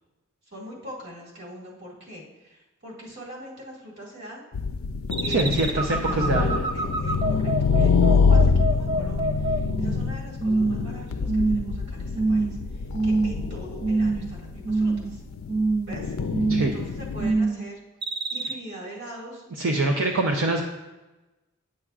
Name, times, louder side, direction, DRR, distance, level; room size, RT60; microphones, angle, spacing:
voice 1, 0.5-4.4 5.2-15.2 15.8-17.8 18.3-20.6, right 1 dB, 55° right, -4 dB, 1.9 m, -42 dB
sound 1, 4.5-17.3, left 5 dB, 85° left, 0.4 m, -25 dB
sound 2, 5.1-10.1 10.4-10.9 11.3-11.8 12.1-12.6 12.9-13.5 13.8-14.3 14.6-15.2 15.5-16.0 16.3-16.8 17.2-17.6 18.0-18.5, right 3 dB, 20° right, 0.4 m, -25 dB
voice 2, 5.3-6.6 16.5-16.7 19.6-20.6, right 2 dB, 75° right, 2 dB, 0.6 m, -24 dB
9.9 x 6.4 x 2.4 m, 1.1 s
head